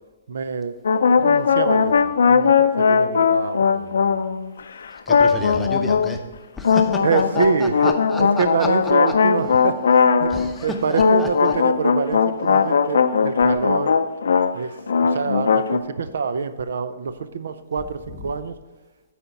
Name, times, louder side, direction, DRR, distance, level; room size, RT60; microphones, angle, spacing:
voice 1, 0.3-0.8 1.1-4.2 7.0-14.0 14.5-18.6, right 5 dB, 80° right, 12 dB, 0.6 m, -26 dB
sound 1, 0.8-4.6 5.1-6.1 6.6-10.6 10.9-14.5 14.8-15.8, left 6 dB, 85° left, 0.5 m, -18 dB
voice 2, 5.1-6.3 6.6-8.7 10.3-11.5 18.1-18.2, left 2 dB, 5° left, 3 dB, 0.7 m, -31 dB
9.1 x 4.3 x 5.8 m, 1.3 s
hypercardioid pair, 160°, 0 cm